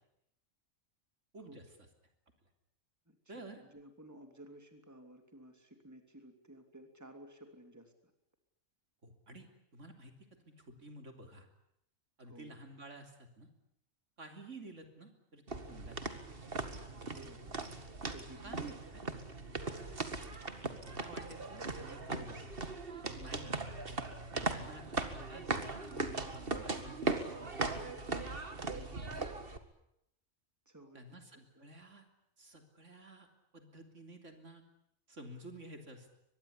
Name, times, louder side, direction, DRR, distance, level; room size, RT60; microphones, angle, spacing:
voice 1, 1.3-1.6 3.3-3.6 9.0-9.5 9.7-10.1 10.5-11.5 12.2-13.5 14.2-16.2 18.4-19.0 20.9-22.7 23.1-23.6 24.5-27.1 27.5-28.2 28.5-29.1 30.9-32.1 32.4-33.3 33.5-34.6 35.1-36.1, right 1 dB, 65° right, 5 dB, 3.6 m, -52 dB
voice 2, 3.1-8.1 12.2-12.5 17.1-17.5 18.1-18.7 19.0-19.1 24.3-24.5 30.6-31.6, right 1 dB, 10° right, 6 dB, 3.2 m, -55 dB
sound 1, 15.5-29.6, right 3 dB, 45° right, 2.2 m, -39 dB
24.0 x 21.0 x 9.9 m, 0.78 s
omnidirectional pair, 1.3 m